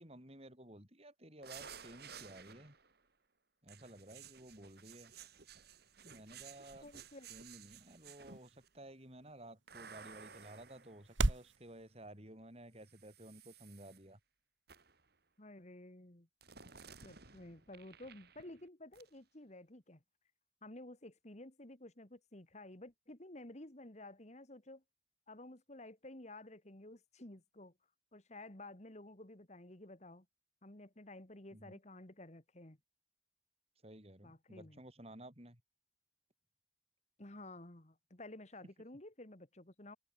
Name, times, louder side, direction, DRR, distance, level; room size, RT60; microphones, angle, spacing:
voice 1, 0.0-2.7 3.6-5.1 6.0-6.9 7.3-14.2 31.5-31.8 33.8-35.6, right 1 dB, 30° right, 6.4 m, -54 dB
sound 1, 1.4-3.0 3.7-8.7 9.7-11.8 12.8-14.0 14.7-15.0 16.4-18.7 18.9-19.1, right 6 dB, 55° right, 4.5 m, -56 dB
sound 2, 5.3-11.6, right 2 dB, 80° right, 1.9 m, -42 dB
voice 2, 6.8-7.3 15.4-16.3 17.0-20.0 20.6-24.8 25.3-27.7 28.1-30.3 30.6-32.8 34.2-34.8 37.2-40.0, left 1 dB, 35° left, 2.0 m, -53 dB
head